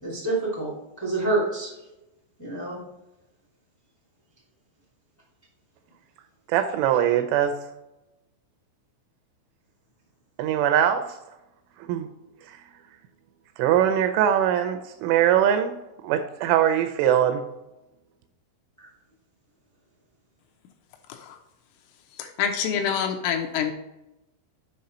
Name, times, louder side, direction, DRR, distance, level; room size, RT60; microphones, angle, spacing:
voice 1, 0.0-1.7 2.4-2.8 18.8-18.9, right 2 dB, 15° left, -5 dB, 0.6 m, -27 dB
voice 2, 6.5-7.6 10.4-11.2 11.8-12.1 12.5-12.6 13.6-15.7 16.0-17.4, right 10 dB, 85° right, 7 dB, 2.9 m, -22 dB
voice 3, 22.2-23.7, left 8 dB, 80° left, 5 dB, 3.1 m, -27 dB
7.7 x 5.4 x 4.3 m, 0.96 s
omnidirectional pair, 5.9 m